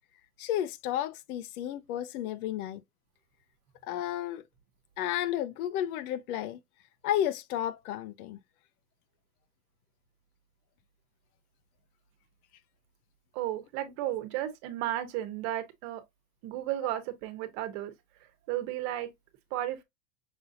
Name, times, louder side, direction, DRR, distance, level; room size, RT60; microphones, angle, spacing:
voice 1, 0.4-2.8 3.8-4.4 5.0-6.6 7.0-8.4, left 11 dB, 75° left, 0.7 m, -32 dB
voice 2, 13.3-16.0 16.4-17.9 18.5-19.1 19.5-19.8, right 13 dB, 50° right, 1.1 m, -33 dB
6.0 x 2.6 x 2.6 m
supercardioid pair, 150°, 45 cm